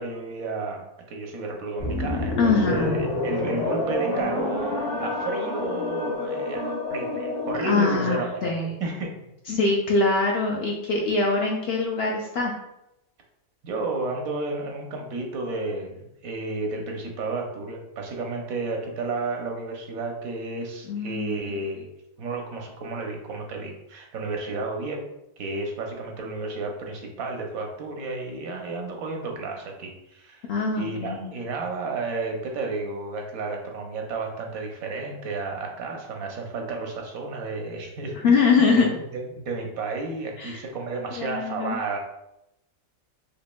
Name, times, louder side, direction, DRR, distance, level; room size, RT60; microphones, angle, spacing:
voice 1, 0.0-8.5 8.8-9.2 13.6-21.9 22.2-25.1 25.4-30.5 30.8-38.2 38.5-42.0, right 3 dB, 90° right, 2 dB, 1.2 m, -32 dB
sound 1, 1.8-8.3, left 2 dB, 80° left, 1.8 m, -28 dB
voice 2, 2.4-3.0 7.6-8.7 9.5-12.5 20.9-21.4 30.5-31.3 38.2-38.9 40.4-40.6 41.1-41.8, left 4 dB, 65° left, -1 dB, 0.7 m, -23 dB
4.9 x 2.5 x 2.2 m, 0.85 s
omnidirectional pair, 1.5 m